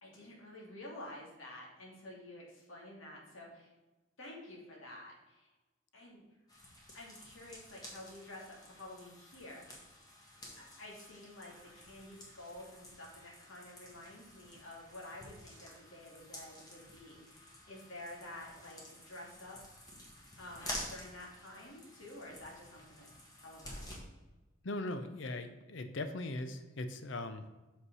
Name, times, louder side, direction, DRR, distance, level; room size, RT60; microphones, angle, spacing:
voice 1, 0.0-3.7 4.2-5.5 5.9-6.2 6.9-9.9 10.6-19.6 20.4-23.1 23.4-23.9, left 1 dB, 85° left, -2 dB, 2.7 m, -50 dB
sound 1, 6.5-24.0, left 1 dB, 20° left, 1.6 m, -50 dB
voice 2, 24.6-27.5, left 2 dB, 70° left, 9 dB, 0.6 m, -39 dB
6.5 x 5.4 x 5.5 m, 1.1 s
head